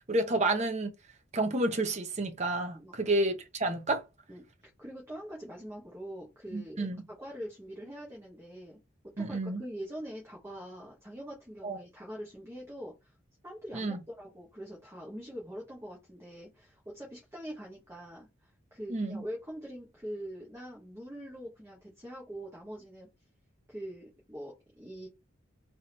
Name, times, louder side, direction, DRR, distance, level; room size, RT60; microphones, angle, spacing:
voice 1, 0.1-0.9 1.3-4.0 6.5-7.0 9.2-9.6 11.6-11.8 13.7-14.0 18.9-19.2, right 2 dB, 35° right, 0.8 m, -30 dB
voice 2, 2.7-3.2 4.3-4.4 4.8-8.8 9.2-13.1 13.4-23.1 23.7-25.1, equal, 15° right, 1.3 m, -44 dB
3.7 x 3.4 x 2.9 m
head